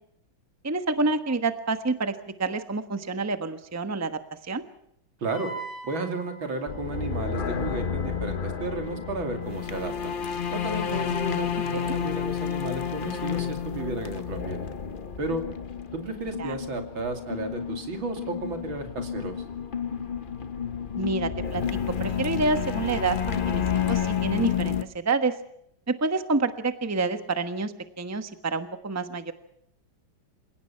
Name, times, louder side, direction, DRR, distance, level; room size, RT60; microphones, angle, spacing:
voice 1, 0.6-4.6 11.7-11.9 16.4-16.5 21.0-21.6 22.0-25.4 25.9-29.3, right 3 dB, 10° right, 9 dB, 1.0 m, -28 dB
voice 2, 5.2-5.5 5.8-10.2 10.5-14.7 15.2-15.4 15.9-19.3, right 2 dB, 80° right, 5 dB, 3.5 m, -33 dB
Wind instrument woodwind instrument, 5.3-9.9, right 3 dB, 20° left, 6.2 m, -44 dB
sound 1, 6.7-24.8, left 7 dB, 45° left, 0.7 m, -30 dB
27.5 x 17.5 x 5.8 m, 0.75 s
omnidirectional pair, 2.1 m